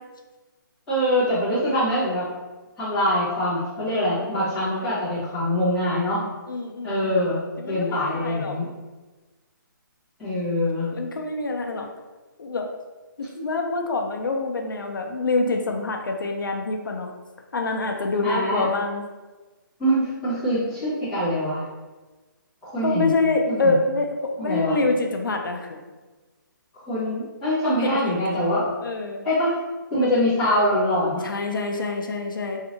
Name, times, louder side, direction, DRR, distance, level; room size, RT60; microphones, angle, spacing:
voice 1, 0.9-2.3 2.8-6.3 6.8-7.4 7.7-8.7 10.2-10.9 18.2-18.7 19.8-21.6 22.6-23.1 23.5-23.7 24.4-24.7 26.9-28.7 29.2-29.5 29.9-31.3, equal, 5° left, -16 dB, 1.1 m, -24 dB
voice 2, 6.5-7.2 7.6-8.6 10.9-11.9 12.4-12.7 13.2-17.1 17.5-19.0 22.8-25.8 27.7-28.2 28.8-29.3 30.0-30.3 31.2-32.6, left 3 dB, 70° left, 3 dB, 0.5 m, -26 dB
3.2 x 2.7 x 2.7 m, 1.2 s
hypercardioid pair, 180°, 11 cm